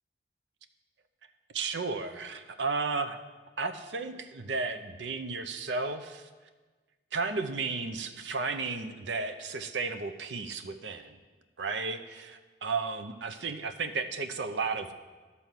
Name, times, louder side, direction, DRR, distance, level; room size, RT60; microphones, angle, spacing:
voice 1, 1.5-3.2 3.6-6.3 7.1-11.2 11.6-14.9, right 4 dB, 85° right, 8 dB, 0.6 m, -33 dB
12.0 x 4.2 x 7.4 m, 1.3 s
head